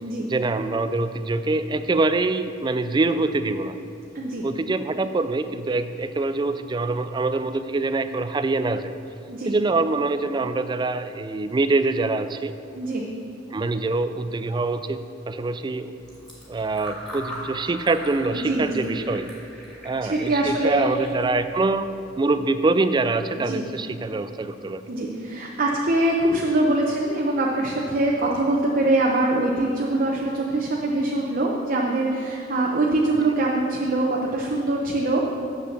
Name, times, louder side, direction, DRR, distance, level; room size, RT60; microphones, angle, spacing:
voice 1, 0.3-3.7 4.4-8.9 9.5-12.5 13.5-15.0 15.3-15.9 16.5-19.3 19.8-21.8 22.2-24.8, right 3 dB, 25° right, 11 dB, 0.3 m, -24 dB
voice 2, 4.1-4.5 9.3-9.5 12.7-13.1 18.3-18.9 20.1-20.9 23.4-23.7 24.9-35.2, right 2 dB, 50° right, -2 dB, 0.8 m, -23 dB
Fill (with liquid), 16.0-22.2, equal, 5° left, 2.3 m, -41 dB
7.5 x 6.9 x 6.5 m, 2.6 s
head